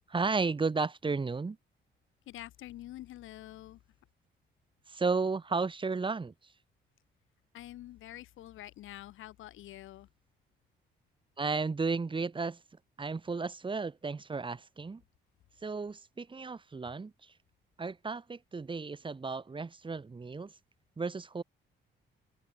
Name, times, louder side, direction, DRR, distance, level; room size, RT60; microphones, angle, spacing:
voice 1, 0.1-1.6 4.9-6.3 11.4-12.6 13.0-15.0 15.6-17.3 17.8-20.5 21.0-21.4, right 4 dB, 25° right, 1.6 m, -33 dB
voice 2, 2.3-3.8 7.5-10.1, left 14 dB, 85° left, 6.2 m, -47 dB
cardioid pair, 90°, 20 cm